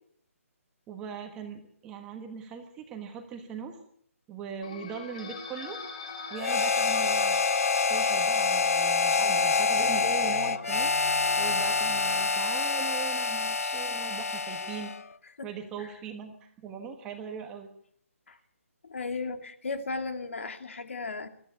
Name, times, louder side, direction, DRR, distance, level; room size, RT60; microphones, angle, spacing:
voice 1, 0.9-3.8 4.3-5.8 6.3-7.4 7.9-10.9 11.4-14.9 15.4-17.7, right 6 dB, 10° right, 5 dB, 1.3 m, -40 dB
sound 1, 4.6-12.3, left 4 dB, 30° left, 4.0 m, -41 dB
Harmonica, 6.4-15.0, left 4 dB, 75° left, 1.0 m, -26 dB
voice 2, 18.8-21.3, left 3 dB, 60° left, 8 dB, 2.4 m, -35 dB
22.0 x 14.0 x 8.3 m, 0.64 s
hypercardioid pair, 175°, 8 cm